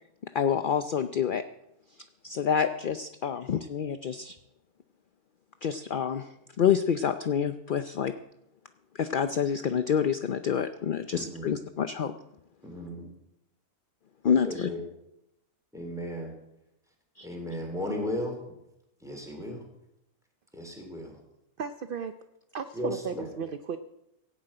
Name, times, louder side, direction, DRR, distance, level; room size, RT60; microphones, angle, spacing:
voice 1, 0.3-1.4 2.2-4.4 5.6-6.3 6.6-8.1 8.9-12.1 14.2-14.7 17.2-17.3, left 7 dB, 55° left, 9 dB, 0.6 m, -27 dB
voice 2, 11.1-11.5 12.6-13.1 14.4-14.8 15.7-16.3 17.2-18.4 19.0-19.6 20.5-21.2 22.7-23.3, left 1 dB, ahead, 1 dB, 3.9 m, -35 dB
voice 3, 21.6-22.1 22.5-23.8, right 6 dB, 50° right, 10 dB, 0.6 m, -35 dB
16.5 x 7.7 x 8.9 m, 0.85 s
omnidirectional pair, 1.6 m